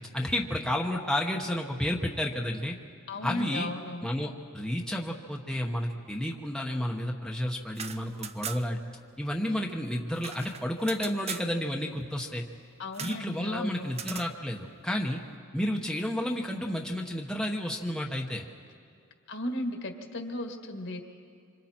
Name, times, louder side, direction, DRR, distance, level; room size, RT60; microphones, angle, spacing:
voice 1, 0.0-2.8 3.2-3.7 4.0-8.8 9.2-12.4 13.0-15.2 15.5-18.4, left 1 dB, 5° left, 0 dB, 1.0 m, -31 dB
voice 2, 3.1-4.1 12.8-13.9 19.3-21.0, left 1 dB, 55° left, 4 dB, 1.7 m, -35 dB
sound 1, 7.6-8.9 9.1-9.2 9.5-11.5 12.9-13.3 13.9-14.3, right 7 dB, 30° right, 0.5 m, -40 dB
26.5 x 26.0 x 4.4 m, 2.3 s
head